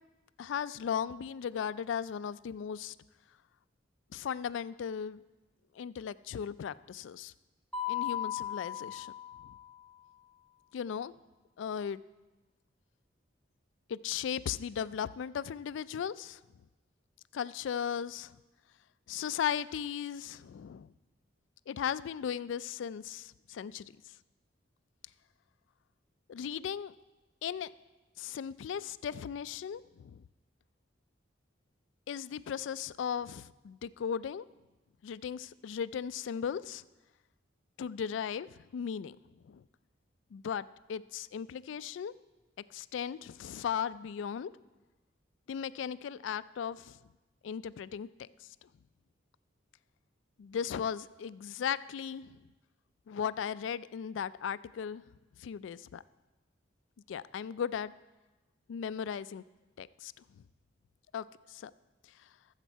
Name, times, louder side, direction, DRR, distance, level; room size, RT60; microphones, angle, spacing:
voice 1, 0.4-2.9 4.1-5.2 5.8-7.3 7.9-9.1 9.4-9.6 10.7-11.1 11.6-12.0 13.9-16.4 17.3-18.3 19.1-20.9 21.7-23.9 26.3-26.9 27.4-27.7 28.2-30.2 32.1-34.5 35.0-36.8 37.8-39.2 39.4-39.6 40.3-42.1 42.7-44.5 45.5-47.0 47.4-48.5 50.4-52.3 53.1-55.0 55.4-56.0 57.1-57.9 58.7-59.4 59.8-60.1 61.1-61.7, left 8 dB, 75° left, 17 dB, 0.3 m, -37 dB
Mallet percussion, 7.7-9.8, left 10 dB, 5° left, 0.8 m, -37 dB
14.0 x 7.4 x 4.5 m, 1.1 s
head